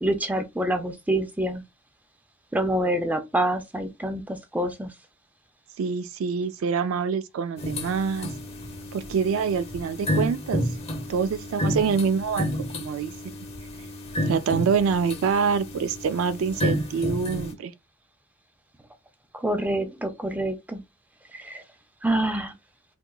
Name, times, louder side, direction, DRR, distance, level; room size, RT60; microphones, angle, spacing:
voice 1, 0.0-1.6 2.5-4.9 19.3-20.8 21.3-21.6 22.0-22.5, right 1 dB, 10° right, 0.5 m, -26 dB
voice 2, 5.8-8.3 8.9-10.6 11.1-12.5 12.7-13.1 14.3-17.7, right 6 dB, 70° right, 0.3 m, -25 dB
sound 1, 7.6-17.5, left 1 dB, 30° left, 0.7 m, -31 dB
3.7 x 2.8 x 2.3 m
head